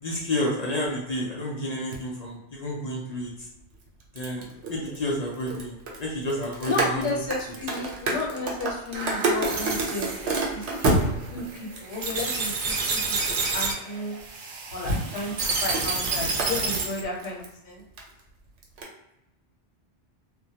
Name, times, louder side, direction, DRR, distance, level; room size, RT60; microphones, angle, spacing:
voice 1, 0.0-3.3 4.1-7.1, left 1 dB, 55° left, -3 dB, 0.5 m, -30 dB
sound 1, 1.9-2.0 3.7-12.9 13.6-13.7 14.7-17.5 17.8-18.2 18.6-18.8, right 2 dB, 85° right, 0.9 m, -29 dB
voice 2, 6.6-10.9 11.3-14.2 14.7-15.3 15.6-17.8, left 2 dB, 85° left, -3 dB, 1.1 m, -33 dB
sound 2, 8.9-17.0, right 3 dB, 60° right, 0.6 m, -30 dB
2.2 x 2.1 x 2.7 m, 0.86 s
omnidirectional pair, 1.1 m